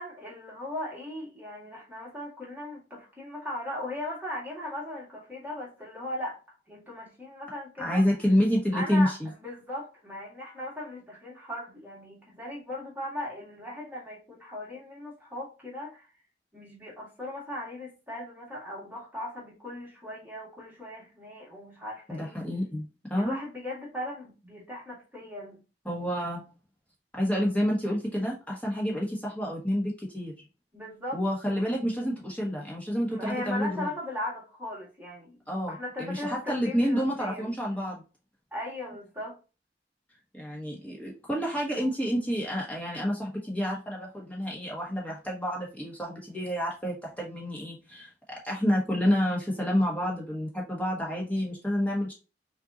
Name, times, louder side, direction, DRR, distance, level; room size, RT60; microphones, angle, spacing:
voice 1, 0.0-6.4 6.7-8.0 8.7-16.1 16.5-22.4 23.1-25.6 30.7-31.2 33.1-35.4 35.7-37.6 38.5-39.4, left 1 dB, 10° right, 1.9 m, -38 dB
voice 2, 7.8-9.3 22.1-23.4 25.8-26.4 27.1-30.3 31.1-33.9 35.5-38.0 40.3-52.1, equal, 10° left, 1.5 m, -29 dB
5.8 x 2.7 x 2.6 m
head